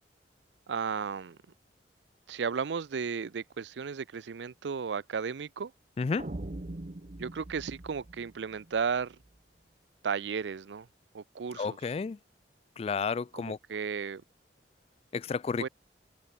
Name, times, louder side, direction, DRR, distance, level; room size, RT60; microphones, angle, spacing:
voice 1, 0.7-1.4 2.3-5.7 7.2-9.2 10.0-10.9 11.1-11.8 13.3-14.2 15.6-15.7, right 6 dB, 90° right, 0.5 m, -34 dB
voice 2, 6.0-6.3 11.6-12.2 12.8-13.6 15.1-15.7, left 5 dB, 35° left, 0.3 m, -31 dB
sound 1, 6.2-9.3, right 1 dB, 45° right, 0.9 m, -42 dB
head